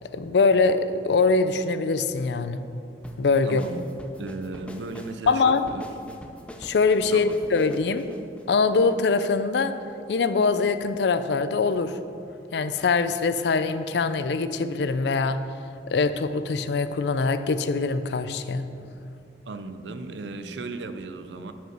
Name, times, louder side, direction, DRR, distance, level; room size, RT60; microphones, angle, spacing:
voice 1, 0.1-2.6 3.2-3.6 5.3-5.6 6.6-8.0 8.5-9.7 10.1-11.9 12.5-15.4 15.9-18.7, left 4 dB, 75° left, 11 dB, 0.4 m, -23 dB
sound 1, 3.0-9.3, left 1 dB, 5° left, 0.5 m, -44 dB
voice 2, 3.4-3.8 4.2-5.8 6.1-6.2 7.1-7.3 19.5-21.5, right 3 dB, 85° right, 9 dB, 0.5 m, -36 dB
7.8 x 5.2 x 5.9 m, 2.6 s
head